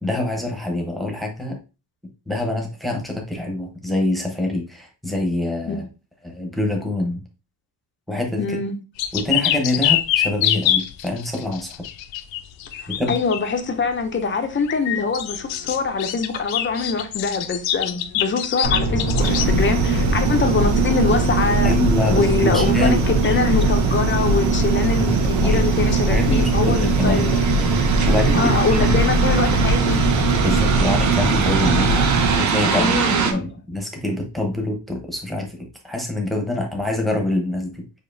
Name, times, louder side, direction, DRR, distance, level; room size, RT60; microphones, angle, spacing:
voice 1, 0.0-1.6 2.3-5.8 6.2-7.2 8.1-8.6 9.1-11.8 12.9-13.2 21.6-23.0 25.4-25.7 26.0-27.3 28.1-29.8 30.4-35.6 35.8-37.7, left 1 dB, ahead, 0.8 m, -25 dB
voice 2, 8.4-8.7 12.8-21.7 22.1-27.4 28.3-30.1 32.7-33.5, left 4 dB, 25° left, 0.5 m, -24 dB
sound 1, 9.0-13.6 14.6-19.5, left 12 dB, 80° left, 0.6 m, -24 dB
sound 2, 18.6-32.4, right 1 dB, 75° right, 1.6 m, -21 dB
sound 3, 19.2-33.3, right 8 dB, 40° right, 0.6 m, -23 dB
6.7 x 2.8 x 2.6 m
cardioid pair, 170°, 45 cm